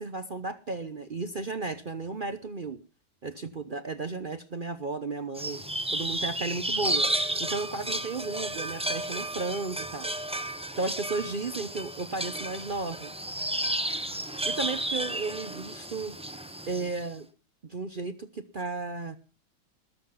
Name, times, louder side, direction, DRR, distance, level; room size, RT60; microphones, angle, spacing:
voice 1, 0.0-2.8 3.2-5.6 5.9-7.1 7.4-10.1 10.8-13.1 14.5-16.2 16.7-17.3 17.7-19.2, right 3 dB, 50° right, 11 dB, 0.6 m, -34 dB
sound 1, 5.4-17.1, right 1 dB, 5° right, 0.5 m, -32 dB
20.0 x 7.9 x 5.5 m, 0.34 s
omnidirectional pair, 2.0 m